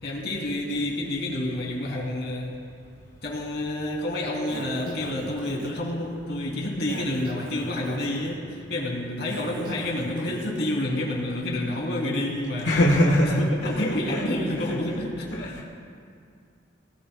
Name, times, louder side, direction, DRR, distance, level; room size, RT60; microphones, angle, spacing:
voice 1, 0.0-2.6 3.2-12.8 13.4-15.6, left 1 dB, 60° left, -2 dB, 3.2 m, -29 dB
Breathing, 4.5-5.8 6.9-8.2 9.3-10.6, equal, 50° right, 2.1 m, -41 dB
voice 2, 12.7-13.4 13.8-14.2 14.7-14.8 15.4-15.6, left 1 dB, 90° left, -3 dB, 1.5 m, -22 dB
24.0 x 18.5 x 2.3 m, 2.3 s
head